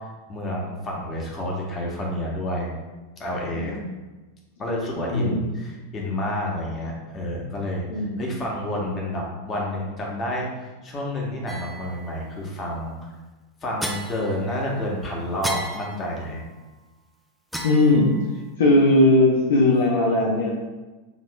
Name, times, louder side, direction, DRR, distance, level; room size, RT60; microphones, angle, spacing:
voice 1, 0.3-2.7 3.2-3.8 4.6-12.9 13.6-16.4, left 1 dB, 25° left, -2 dB, 1.1 m, -29 dB
voice 2, 3.5-3.9 5.1-5.4 7.9-8.2 17.6-18.1 18.6-20.6, left 2 dB, 60° left, -3 dB, 0.7 m, -19 dB
sound 1, 11.5-12.2 13.8-14.9 15.4-16.5 17.5-18.5, equal, ahead, 0.5 m, -35 dB
6.9 x 3.0 x 2.3 m, 1.2 s
figure-of-eight pair, 90°, 0 cm